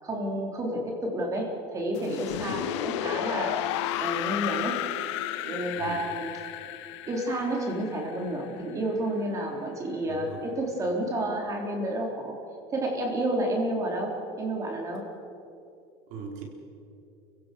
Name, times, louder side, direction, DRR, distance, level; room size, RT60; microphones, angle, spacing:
voice 1, 0.0-4.9 5.4-6.3 7.1-10.3 10.5-12.4 12.7-15.1, right 1 dB, 20° right, 1 dB, 4.0 m, -30 dB
sound 1, 2.0-8.9, left 13 dB, 85° left, 1.0 m, -33 dB
voice 2, 2.5-2.8 5.7-6.0 10.0-10.4 16.1-16.4, right 6 dB, 55° right, 1 dB, 4.6 m, -40 dB
30.0 x 16.5 x 6.9 m, 2.6 s
cardioid pair, 160°, 14 cm